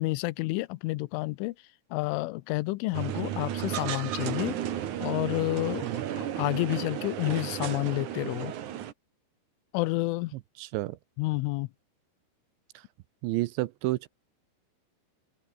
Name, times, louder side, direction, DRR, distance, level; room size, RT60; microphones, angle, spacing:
voice 1, 0.0-1.6 1.9-4.6 5.0-8.5 9.7-10.3 11.2-11.7, left 21 dB, 85° left, 3.2 m, -30 dB
sound 1, 2.9-8.9, right 11 dB, 60° right, 2.2 m, -33 dB
voice 2, 10.6-11.0 13.2-14.1, right 18 dB, 80° right, 2.9 m, -30 dB
open air
omnidirectional pair, 5.6 m